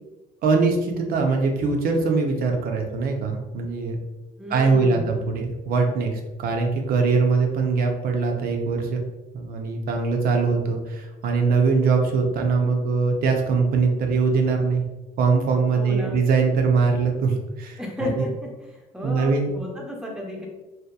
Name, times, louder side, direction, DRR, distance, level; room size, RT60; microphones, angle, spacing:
voice 1, 0.4-4.0 4.5-9.0 9.3-14.8 15.2-18.3 19.0-19.5, right 4 dB, 60° right, 2 dB, 0.5 m, -22 dB
voice 2, 4.4-5.1 15.7-16.2 17.8-20.5, left 1 dB, 5° right, -1 dB, 0.6 m, -33 dB
2.7 x 2.2 x 2.2 m, 1.1 s
cardioid pair, 110°, 17 cm